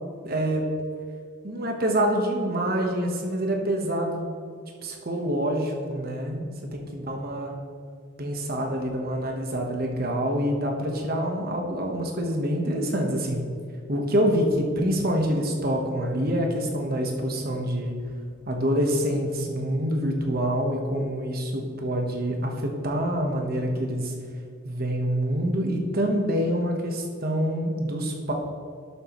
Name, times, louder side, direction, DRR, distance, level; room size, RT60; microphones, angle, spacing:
voice 1, 0.2-0.7 1.4-4.4 4.8-7.6 8.2-13.4 13.9-17.9 18.5-24.1 24.6-28.3, equal, 50° right, 2 dB, 1.3 m, -26 dB
11.0 x 8.0 x 3.2 m, 2.2 s
head